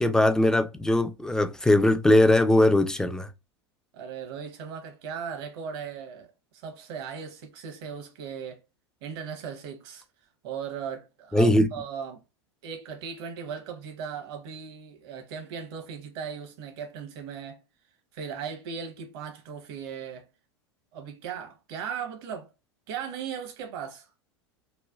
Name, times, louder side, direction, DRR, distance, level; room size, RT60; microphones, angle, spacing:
voice 1, 0.0-3.3 11.3-11.7, left 1 dB, 5° left, 0.3 m, -20 dB
voice 2, 3.9-8.6 9.0-10.0 10.4-12.2 12.6-17.6 18.1-20.3 20.9-22.5 22.9-24.1, right 7 dB, 60° right, 1.0 m, -37 dB
3.1 x 2.2 x 2.3 m
hypercardioid pair, 95°, 15 cm